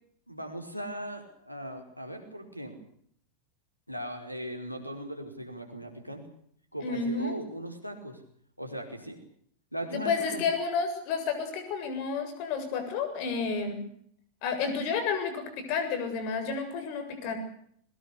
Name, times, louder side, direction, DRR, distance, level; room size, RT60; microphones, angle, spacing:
voice 1, 0.3-2.8 3.9-6.2 6.7-8.2 8.6-9.2 9.7-10.4, right 1 dB, 90° left, 6 dB, 5.1 m, -38 dB
voice 2, 6.8-7.4 9.9-13.8 14.4-17.4, left 5 dB, 45° left, 7 dB, 7.6 m, -31 dB
22.5 x 21.0 x 8.4 m, 0.66 s
figure-of-eight pair, 90°, 0 cm